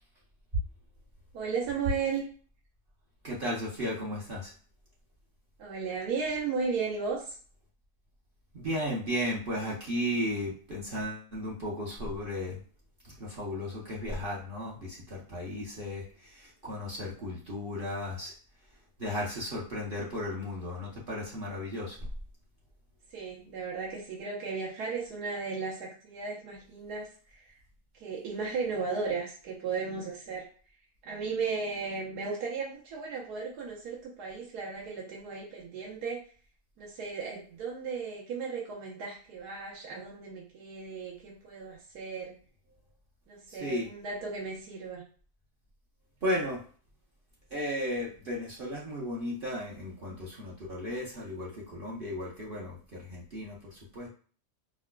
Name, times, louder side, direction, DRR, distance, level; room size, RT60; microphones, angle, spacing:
voice 1, 1.3-2.2 5.6-7.3 23.1-27.4 27.9-30.5 31.0-36.2 36.8-42.3 43.3-45.0, right 5 dB, 85° right, -4 dB, 1.3 m, -35 dB
voice 2, 3.2-4.5 8.5-12.6 13.0-18.3 19.0-22.0 43.5-43.9 46.2-46.6 47.5-54.1, left 1 dB, 45° right, -4 dB, 0.8 m, -35 dB
4.7 x 2.1 x 2.2 m, 0.41 s
omnidirectional pair, 1.7 m